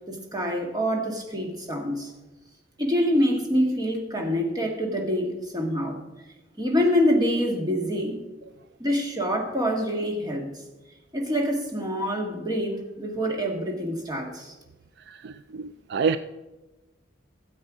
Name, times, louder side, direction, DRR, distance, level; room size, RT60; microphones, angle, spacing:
voice 1, 0.1-2.1 2.8-6.0 6.6-8.2 8.8-10.5 11.1-14.5, equal, 20° right, 1 dB, 1.7 m, -26 dB
voice 2, 15.1-16.2, right 5 dB, 60° right, 12 dB, 0.3 m, -28 dB
13.0 x 7.9 x 5.0 m, 1.1 s
head